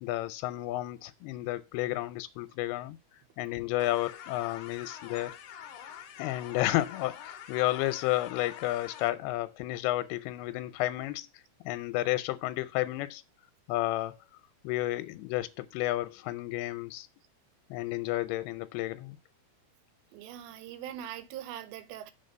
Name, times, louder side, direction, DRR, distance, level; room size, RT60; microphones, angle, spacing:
voice 1, 0.0-3.0 3.4-5.4 6.2-11.3 11.6-13.2 13.7-14.2 14.6-17.1 17.7-19.2, left 16 dB, 90° left, 2.6 m, -31 dB
sound 1, 3.8-9.1, left 9 dB, 70° left, 2.1 m, -46 dB
voice 2, 20.1-22.1, right 11 dB, 80° right, 2.6 m, -42 dB
7.2 x 4.0 x 6.6 m
omnidirectional pair, 4.4 m